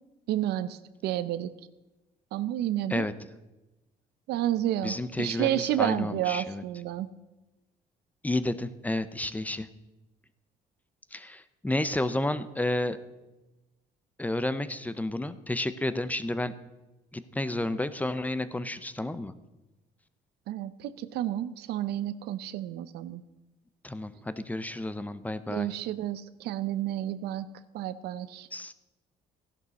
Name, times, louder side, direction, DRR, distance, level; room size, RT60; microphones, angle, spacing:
voice 1, 0.3-1.5 2.3-3.1 4.3-7.1 20.5-23.2 25.5-27.5 27.7-28.5, right 12 dB, 80° right, 15 dB, 0.7 m, -30 dB
voice 2, 4.8-6.6 8.2-9.7 11.1-13.0 14.2-16.5 17.1-19.3 23.8-25.7 28.5-28.7, left 1 dB, 10° left, 13 dB, 0.6 m, -31 dB
15.0 x 11.5 x 4.1 m, 1.1 s
cardioid pair, 110°, 17 cm